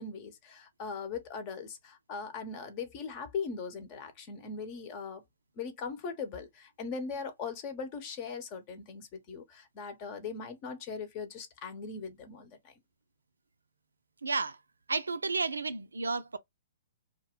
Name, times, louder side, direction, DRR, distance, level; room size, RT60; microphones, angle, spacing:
voice 1, 0.0-5.2 5.6-12.7, left 5 dB, 35° left, 0.9 m, -40 dB
voice 2, 14.2-14.6 14.9-16.4, right 4 dB, 80° right, 0.4 m, -32 dB
2.4 x 2.1 x 3.5 m
figure-of-eight pair, 120°, 0 cm